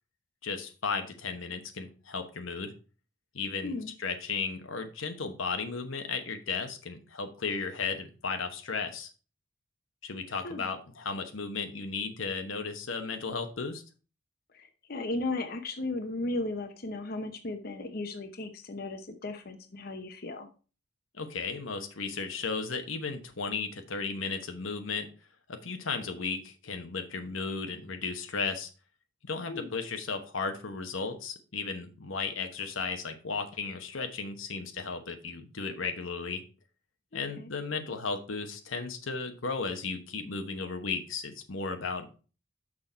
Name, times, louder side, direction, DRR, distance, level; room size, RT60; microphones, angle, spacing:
voice 1, 0.4-2.7 3.3-9.1 10.0-13.8 21.1-25.1 25.5-28.7 29.2-36.4 37.1-42.2, left 4 dB, 90° left, 6 dB, 1.1 m, -35 dB
voice 2, 14.5-20.5 29.5-29.7 37.1-37.5, left 2 dB, 50° left, 7 dB, 0.8 m, -36 dB
6.2 x 5.9 x 4.5 m, 0.35 s
head